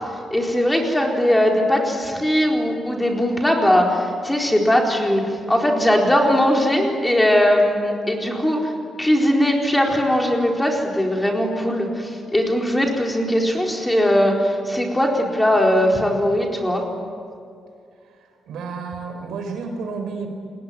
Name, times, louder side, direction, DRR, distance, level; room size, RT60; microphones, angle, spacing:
voice 1, 0.3-5.2 5.5-8.7 9.0-16.9, equal, 10° left, 0 dB, 4.3 m, -19 dB
voice 2, 18.0-20.3, right 4 dB, 85° right, 5 dB, 4.7 m, -31 dB
28.5 x 21.5 x 9.1 m, 2.4 s
cardioid pair, 140°, 0 cm